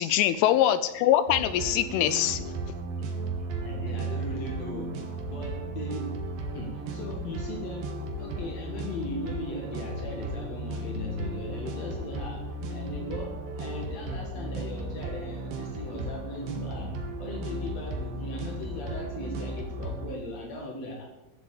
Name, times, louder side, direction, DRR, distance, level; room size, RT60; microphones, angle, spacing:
voice 1, 0.0-2.4, left 11 dB, 85° left, 13 dB, 2.9 m, -23 dB
sound 1, 1.3-20.2, right 2 dB, 55° right, 2.7 m, -35 dB
voice 2, 3.6-6.1 6.5-7.9 8.2-21.0, left 2 dB, 65° left, 0 dB, 1.7 m, -38 dB
15.0 x 8.0 x 8.7 m, 1.0 s
omnidirectional pair, 6.0 m